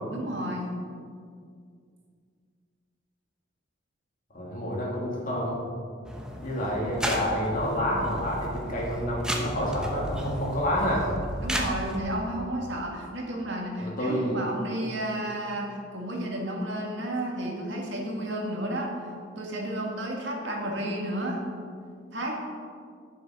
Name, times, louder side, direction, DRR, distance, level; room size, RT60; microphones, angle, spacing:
voice 1, 0.1-0.7 11.4-19.1 19.4-21.5 22.1-22.4, right 1 dB, 65° right, -1 dB, 1.9 m, -32 dB
voice 2, 4.3-5.6 6.4-11.1 13.8-14.4, equal, 45° left, -3 dB, 2.6 m, -28 dB
sound 1, 6.0-12.0, equal, 5° right, 1.0 m, -34 dB
10.0 x 7.4 x 5.9 m, 2.2 s
head